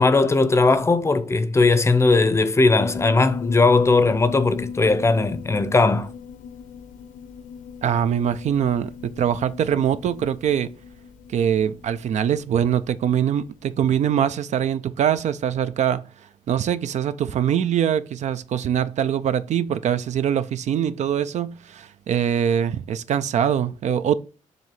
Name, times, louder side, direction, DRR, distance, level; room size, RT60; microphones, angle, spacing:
voice 1, 0.0-6.1, left 3 dB, 20° left, 0.6 m, -18 dB
Piano, 2.8-13.5, left 7 dB, 80° left, 0.8 m, -37 dB
voice 2, 7.8-10.7 11.3-16.0 16.5-24.2, right 9 dB, 60° right, 0.4 m, -23 dB
7.5 x 2.7 x 5.9 m
cardioid pair, 125°, 13 cm